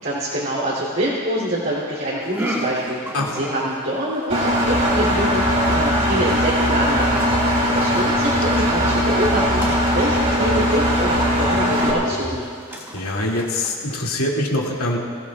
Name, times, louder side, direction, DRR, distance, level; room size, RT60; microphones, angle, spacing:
voice 1, 0.0-3.0 3.3-5.4 5.7-7.2 7.7-12.4, right 1 dB, 50° right, -9 dB, 3.3 m, -25 dB
sound 1, 2.2-14.1, equal, 10° right, 2.1 m, -34 dB
Engine, 4.3-11.9, equal, 35° right, 3.2 m, -20 dB
sound 2, 4.7-12.4, equal, 10° left, 1.9 m, -29 dB
voice 2, 12.9-15.0, left 1 dB, 80° left, -2 dB, 2.7 m, -24 dB
24.5 x 17.0 x 2.5 m, 2.2 s
head